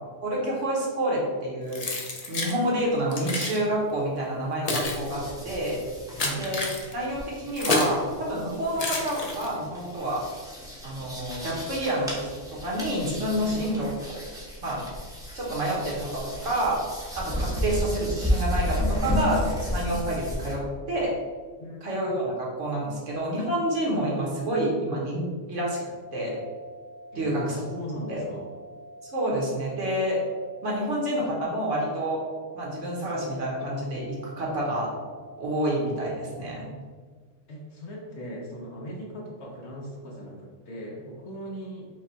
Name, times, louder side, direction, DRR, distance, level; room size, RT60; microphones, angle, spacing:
voice 1, 0.2-1.8 2.3-5.8 6.4-10.2 10.8-13.9 14.6-14.8 15.3-16.8 17.1-20.6 20.9-21.1 21.8-25.8 26.1-26.4 27.1-27.6 28.1-28.2 29.1-30.2 30.6-32.2 32.5-34.9 35.4-36.7, right 1 dB, 65° right, -3 dB, 1.4 m, -28 dB
Keys jangling, 1.7-2.6 3.1-3.6 4.3-8.0 8.7-9.7, left 2 dB, 45° left, 0.5 m, -30 dB
sound 1, 4.8-20.5, left 1 dB, 5° right, 0.8 m, -33 dB
voice 2, 21.6-22.0 27.1-28.5 37.5-41.9, equal, 60° left, -2 dB, 1.2 m, -38 dB
sound 2, 26.4-36.4, right 1 dB, 85° right, 1.0 m, -46 dB
5.2 x 2.3 x 4.0 m, 1.5 s
omnidirectional pair, 1.4 m